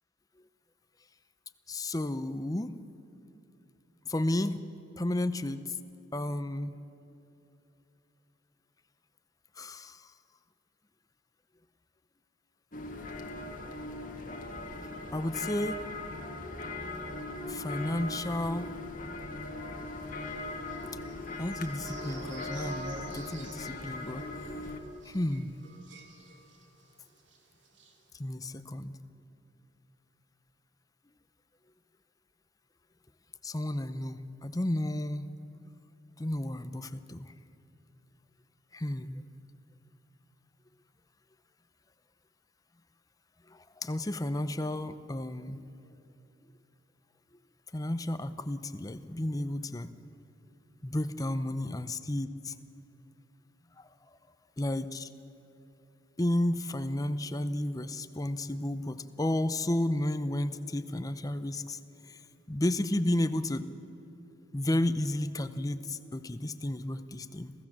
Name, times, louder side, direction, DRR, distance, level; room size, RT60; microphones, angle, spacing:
voice 1, 1.7-2.7 4.1-4.6 5.0-5.8 6.1-6.8 9.6-10.1 15.1-15.8 17.5-18.7 21.4-24.2 25.0-25.6 28.1-29.0 33.4-35.3 36.2-37.3 38.7-39.2 43.5-45.6 47.7-49.9 50.8-52.5 53.8-53.9 54.6-55.1 56.2-62.2 62.5-63.7 64.5-67.5, left 1 dB, 20° left, 11 dB, 0.6 m, -32 dB
sound 1, 12.7-24.8, left 2 dB, 40° left, 1.7 m, -39 dB
sound 2, 20.2-26.9 27.2-27.4 27.6-27.9, right 2 dB, 60° right, 2.5 m, -49 dB
27.0 x 15.5 x 7.4 m, 3.0 s
head